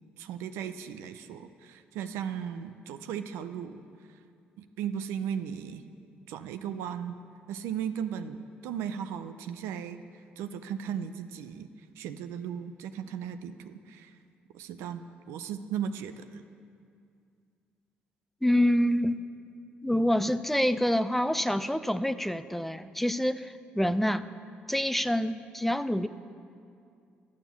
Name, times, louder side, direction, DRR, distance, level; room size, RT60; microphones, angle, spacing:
voice 1, 0.2-3.8 4.8-5.9 6.3-7.1 7.5-10.0 10.4-11.7 12.0-14.1 14.5-15.0 15.3-16.4, right 8 dB, 85° right, 9 dB, 0.5 m, -36 dB
voice 2, 18.4-19.2 19.8-24.3 24.7-26.1, equal, 5° left, 12 dB, 0.5 m, -26 dB
11.5 x 7.3 x 7.1 m, 2.4 s
supercardioid pair, 65°, 4 cm